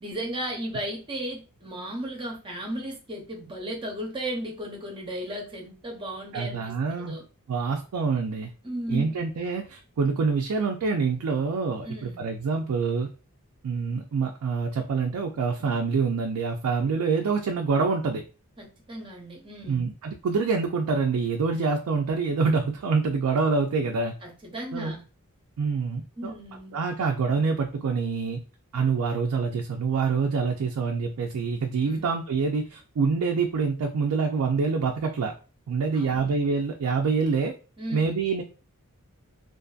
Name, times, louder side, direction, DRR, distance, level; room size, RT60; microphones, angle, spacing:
voice 1, 0.0-7.2 8.6-9.2 11.8-12.3 18.6-19.9 24.2-25.0 26.2-26.7 31.9-32.1 35.9-36.3 37.8-38.1, right 1 dB, 25° right, -1 dB, 0.7 m, -35 dB
voice 2, 6.3-7.2 7.5-8.5 8.9-13.1 13.6-18.2 19.7-24.1 24.7-25.0 25.6-26.3 26.7-28.4 28.7-35.3 35.7-37.5 37.9-38.4, right 4 dB, 75° right, 2 dB, 0.4 m, -26 dB
2.5 x 2.5 x 2.3 m, 0.34 s
head